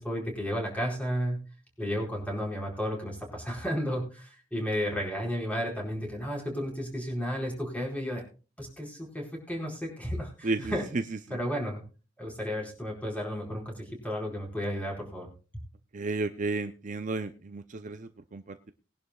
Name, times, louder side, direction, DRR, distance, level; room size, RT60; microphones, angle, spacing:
voice 1, 0.0-1.4 1.8-8.2 8.6-10.9 11.3-11.8 12.2-15.3, equal, 5° left, -1 dB, 4.6 m, -33 dB
voice 2, 10.4-11.0 11.3-11.4 15.9-18.7, right 3 dB, 40° right, 9 dB, 0.6 m, -33 dB
21.0 x 11.0 x 2.3 m, 0.35 s
head